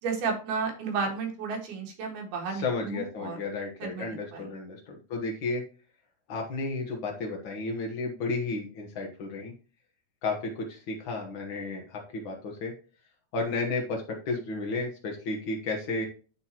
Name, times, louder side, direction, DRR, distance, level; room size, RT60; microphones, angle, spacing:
voice 1, 0.0-3.4 3.8-4.5, right 5 dB, 85° right, 1 dB, 3.7 m, -32 dB
voice 2, 2.5-5.6 6.3-9.5 10.2-12.7 13.3-16.0, left 3 dB, 85° left, 0 dB, 1.1 m, -33 dB
11.0 x 4.2 x 2.9 m, 0.36 s
omnidirectional pair, 4.4 m